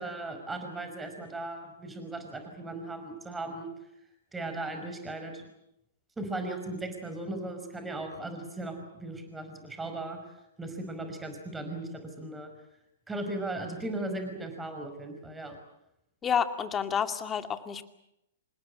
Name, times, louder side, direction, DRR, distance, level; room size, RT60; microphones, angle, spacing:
voice 1, 0.0-3.7 4.3-5.4 6.2-10.2 10.6-11.9 12.2-12.5 13.1-15.6, right 2 dB, 10° right, 6 dB, 5.4 m, -37 dB
voice 2, 16.2-17.8, left 7 dB, 20° left, 8 dB, 2.3 m, -29 dB
27.0 x 20.5 x 8.6 m, 0.83 s
hypercardioid pair, 115°, 0 cm